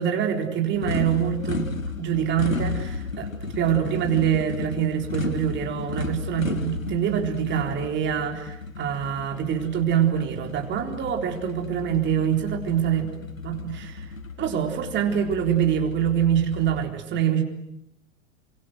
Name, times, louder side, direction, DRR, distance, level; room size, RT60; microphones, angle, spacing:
voice 1, 0.0-1.7 2.0-13.1 13.4-14.1 14.4-17.4, right 9 dB, 30° right, 3 dB, 4.2 m, -25 dB
sound 1, 0.7-16.9, left 4 dB, 85° left, 1.8 m, -34 dB
29.5 x 25.0 x 7.9 m, 0.80 s
figure-of-eight pair, 90°, 39 cm